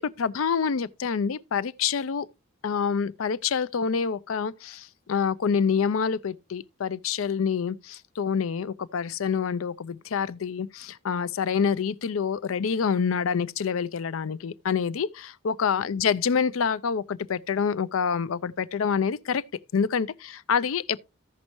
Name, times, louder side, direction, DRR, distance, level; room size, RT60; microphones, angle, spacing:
voice 1, 0.2-2.3 2.6-19.4 19.7-21.0, left 6 dB, 85° left, 0.5 m, -27 dB
15.0 x 5.3 x 3.0 m
head